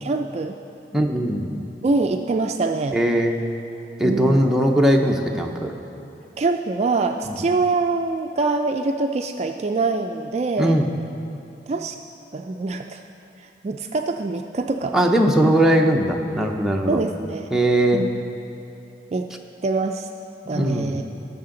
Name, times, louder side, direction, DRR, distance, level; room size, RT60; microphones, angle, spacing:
voice 1, 0.0-0.6 1.8-3.0 4.0-4.4 6.4-10.8 11.7-12.0 12.3-13.0 13.6-15.0 16.9-17.6 17.9-18.1 19.1-19.3 19.6-20.1 20.5-21.0, right 3 dB, 35° right, 4 dB, 0.3 m, -24 dB
voice 2, 0.9-1.6 2.9-3.4 4.0-5.7 7.3-7.4 10.6-10.9 14.9-17.0 17.5-18.1 20.5-21.0, right 1 dB, 5° right, 0 dB, 0.6 m, -19 dB
18.5 x 6.6 x 3.8 m, 3.0 s
head